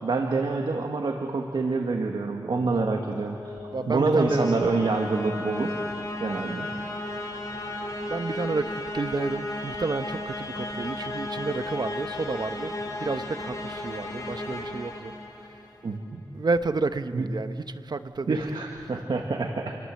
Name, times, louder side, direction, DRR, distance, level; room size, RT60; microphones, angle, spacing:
voice 1, 0.0-3.6 3.9-5.8 6.2-6.7 15.8-16.2 17.1-17.2 18.3-19.8, right 3 dB, 85° right, 3 dB, 1.8 m, -26 dB
sound 1, 2.8-15.8, left 2 dB, 45° left, 5.1 m, -34 dB
voice 2, 3.7-4.6 8.1-12.7 13.0-15.1 16.3-18.4, right 3 dB, 60° right, 10 dB, 1.1 m, -30 dB
29.5 x 24.5 x 7.8 m, 2.4 s
cardioid pair, 45°, 8 cm